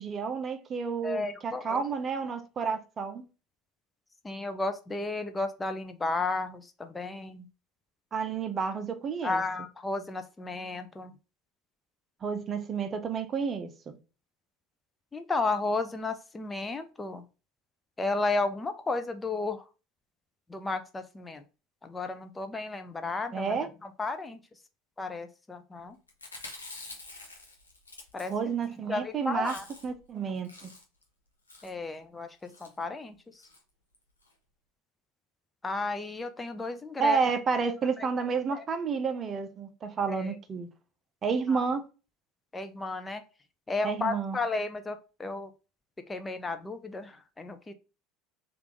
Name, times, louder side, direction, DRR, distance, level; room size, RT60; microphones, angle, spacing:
voice 1, 0.0-3.2 8.1-9.4 12.2-13.9 23.3-23.7 28.3-29.6 29.8-30.7 37.0-40.7 41.2-41.9 43.8-44.4, right 5 dB, 35° right, 0.5 m, -30 dB
voice 2, 1.0-1.8 4.2-7.5 9.2-11.1 15.1-17.2 18.0-19.7 20.5-21.4 21.8-23.5 23.8-24.4 25.0-26.0 28.1-28.3 28.9-29.7 31.6-33.5 35.6-37.2 38.0-38.1 38.5-38.6 40.1-40.3 41.5-41.7 42.5-43.2 43.7-45.5 46.1-47.7, left 3 dB, 15° left, 0.5 m, -33 dB
Chewing mastication, 26.1-28.7 29.0-29.1 29.3-30.0 30.3-31.0 31.5-31.8 32.4-32.7 33.4-33.6 33.9-34.0 34.2-34.3, left 2 dB, 90° left, 0.6 m, -47 dB
3.3 x 2.5 x 3.0 m
figure-of-eight pair, 70°, 0 cm